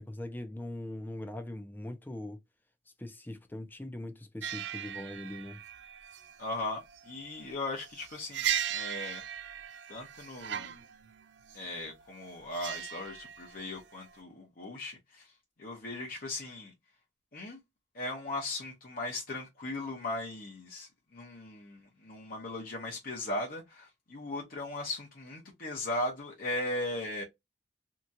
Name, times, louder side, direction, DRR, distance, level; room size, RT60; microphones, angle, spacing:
voice 1, 0.0-2.4 3.0-5.6, left 1 dB, 10° left, 0.5 m, -41 dB
sound 1, 4.4-14.2, right 10 dB, 70° right, 0.4 m, -38 dB
voice 2, 6.4-9.2 9.9-10.7 11.5-15.3 15.6-16.7 17.3-17.6 17.9-27.2, left 2 dB, 50° left, 0.8 m, -38 dB
2.9 x 2.3 x 2.6 m
head